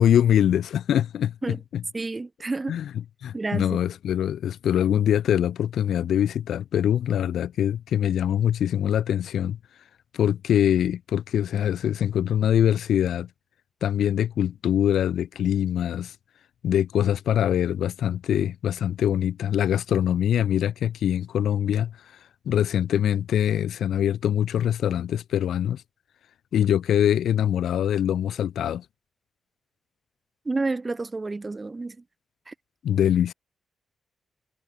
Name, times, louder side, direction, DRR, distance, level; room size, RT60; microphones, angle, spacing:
voice 1, 0.0-1.8 2.7-2.9 3.2-9.6 10.1-13.3 13.8-16.1 16.6-21.9 22.5-25.8 26.5-28.8 32.8-33.3, left 10 dB, 85° left, 0.5 m, -23 dB
voice 2, 1.9-2.8 3.3-3.8 30.5-32.0 32.5-32.6, right 3 dB, 30° right, 0.3 m, -30 dB
cardioid pair, 65°, 0 cm